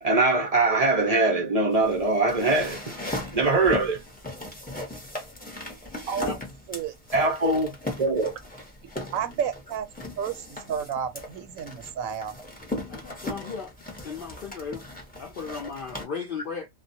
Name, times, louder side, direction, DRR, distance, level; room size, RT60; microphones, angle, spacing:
voice 1, 0.0-2.9 3.3-4.0 7.1-8.3, right 3 dB, 50° right, 0.4 m, -22 dB
sound 1, 1.7-16.0, left 1 dB, 10° left, 0.5 m, -38 dB
voice 2, 6.1-6.4 6.7-6.9 9.1-9.9 10.2-12.3, right 8 dB, 80° right, 1.0 m, -31 dB
voice 3, 12.9-13.7 14.0-14.8 15.2-16.7, left 5 dB, 65° left, 0.5 m, -35 dB
2.2 x 2.1 x 2.6 m
omnidirectional pair, 1.4 m